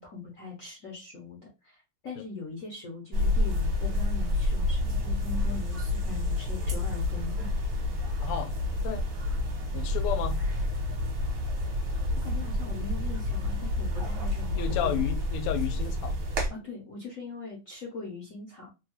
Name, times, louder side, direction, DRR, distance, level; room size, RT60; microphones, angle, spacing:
voice 1, 0.0-7.5 12.2-15.0 16.5-18.7, left 4 dB, 60° left, 0.8 m, -41 dB
sound 1, 3.1-16.5, left 2 dB, 60° right, 1.4 m, -29 dB
voice 2, 8.2-8.5 8.8-9.1 9.7-10.4 14.6-16.1, left 9 dB, 85° left, 1.5 m, -32 dB
3.5 x 2.3 x 2.9 m
omnidirectional pair, 2.4 m